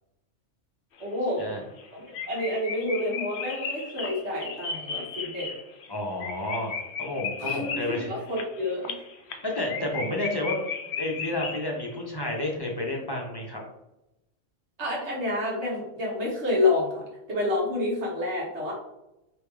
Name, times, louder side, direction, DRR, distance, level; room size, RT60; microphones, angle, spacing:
sound 1, 1.0-1.1 1.4-1.5 1.8-1.9 2.1-12.0 12.2-12.4, left 5 dB, 65° left, 0.9 m, -35 dB
voice 1, 1.0-1.5 1.9-5.5 7.4-8.9 14.8-18.7, left 2 dB, 65° right, -3 dB, 1.6 m, -29 dB
voice 2, 5.9-6.7 7.0-8.1 9.4-10.6 11.0-13.6, left 1 dB, 25° left, -1 dB, 0.7 m, -30 dB
3.4 x 3.0 x 4.7 m, 0.90 s
omnidirectional pair, 1.3 m